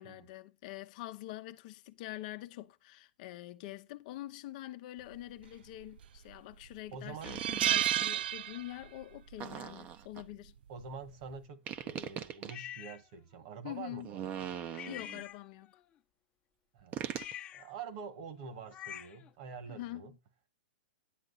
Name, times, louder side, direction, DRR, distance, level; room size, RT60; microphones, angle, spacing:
voice 1, 0.0-10.6 13.6-14.1 14.9-15.7 19.7-20.1, left 15 dB, 45° left, 0.9 m, -45 dB
sound 1, 5.8-6.3 6.7-6.8 7.2-9.0 9.3-9.5 10.8-11.1, right 11 dB, 75° right, 0.4 m, -31 dB
voice 2, 6.9-7.4 10.7-14.5 16.7-17.1 17.5-20.1, right 5 dB, 50° right, 1.8 m, -46 dB
sound 2, 7.2-8.2 9.4-10.2 11.7-12.5 14.0-15.2 16.9-17.3, right 9 dB, 30° right, 0.9 m, -40 dB
sound 3, 12.5-13.0 14.7-15.8 17.1-19.3, left 11 dB, 25° left, 1.0 m, -47 dB
10.5 x 7.7 x 4.1 m
hypercardioid pair, 145°, 5 cm